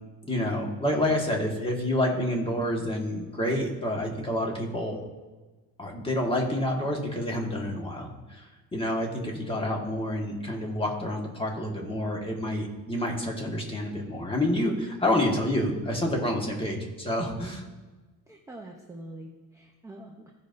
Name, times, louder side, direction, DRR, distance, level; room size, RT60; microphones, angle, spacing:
voice 1, 0.2-5.0 5.8-17.6, left 1 dB, 15° left, 0 dB, 1.5 m, -28 dB
voice 2, 18.3-20.3, right 1 dB, 10° right, 0 dB, 0.7 m, -45 dB
15.5 x 5.4 x 2.6 m, 1.2 s
cardioid pair, 130°, 34 cm